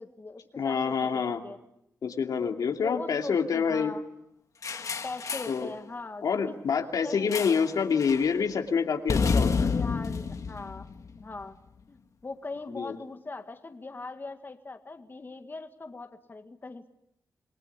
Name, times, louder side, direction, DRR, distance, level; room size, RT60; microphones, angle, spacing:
voice 1, 0.0-1.6 2.8-4.0 5.0-6.6 7.0-7.6 9.7-10.9 11.1-11.6 11.9-16.9, left 3 dB, 35° left, 6 dB, 1.8 m, -41 dB
voice 2, 0.6-1.4 2.0-3.9 5.5-5.7 6.2-9.7 12.7-12.9, left 6 dB, 80° left, 3 dB, 2.7 m, -27 dB
sound 1, 4.6-5.6 7.3-7.7 8.0-8.3 9.1-11.4, left 5 dB, 60° left, 1.9 m, -29 dB
27.5 x 20.0 x 9.6 m, 0.83 s
cardioid pair, 80°, 6 cm